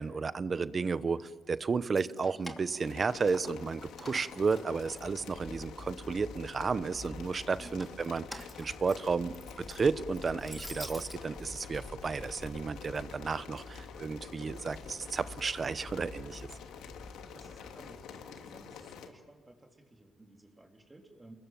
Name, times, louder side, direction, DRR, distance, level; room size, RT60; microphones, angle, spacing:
voice 1, 0.0-9.4 9.7-16.5, right 5 dB, 35° right, 14 dB, 1.0 m, -33 dB
Keys jangling, 1.8-3.7 4.0-5.6 6.0-6.8 7.5-11.2, equal, ahead, 2.9 m, -48 dB
sound 1, 2.8-19.1, left 7 dB, 85° left, 2.7 m, -48 dB
sound 2, 3.6-19.2, left 2 dB, 15° left, 3.9 m, -50 dB
voice 2, 17.3-21.4, right 2 dB, 20° right, 2 dB, 3.8 m, -56 dB
28.5 x 22.0 x 9.2 m, 1.3 s
cardioid pair, 90°, 0 cm